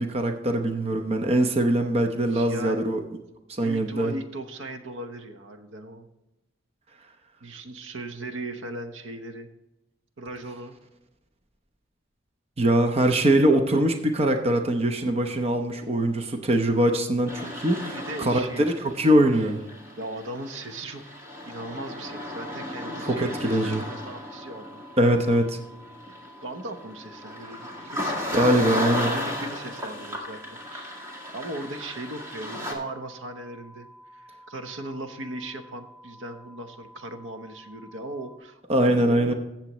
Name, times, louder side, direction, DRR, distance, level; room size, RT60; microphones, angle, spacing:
voice 1, 0.0-3.0 3.5-4.1 12.6-19.6 23.1-23.8 25.0-25.6 28.3-29.1 38.7-39.3, right 1 dB, 30° right, 5 dB, 0.8 m, -22 dB
voice 2, 2.2-2.9 3.6-6.1 7.4-9.5 10.2-10.8 17.9-18.7 19.0-19.1 20.0-21.0 21.5-24.8 26.1-26.2 26.4-28.5 29.0-31.0 31.3-38.6 39.0-39.3, right 1 dB, 70° right, 7 dB, 1.0 m, -38 dB
sound 1, 17.3-32.7, left 1 dB, 15° right, 2.0 m, -35 dB
sound 2, 22.0-38.4, equal, 25° left, 1.1 m, -51 dB
15.0 x 7.4 x 3.1 m, 0.94 s
head